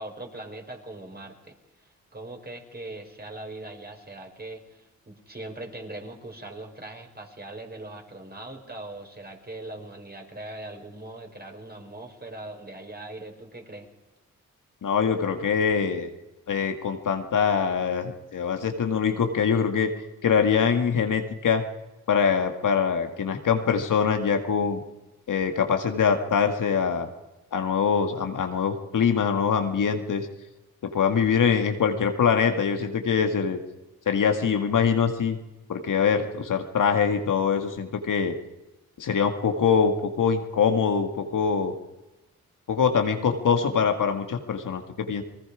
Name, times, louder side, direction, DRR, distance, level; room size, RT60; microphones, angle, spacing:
voice 1, 0.0-1.5 1.8-13.9, right 2 dB, 30° right, 3 dB, 5.0 m, -40 dB
voice 2, 14.8-16.1 16.5-19.9 20.2-21.6 22.1-24.8 25.3-27.1 27.5-30.3 30.8-33.6 34.1-35.4 35.7-38.4 39.0-41.7 42.7-45.2, left 6 dB, 70° left, 6 dB, 1.9 m, -23 dB
29.0 x 19.5 x 5.0 m, 1.0 s
supercardioid pair, 45°, 33 cm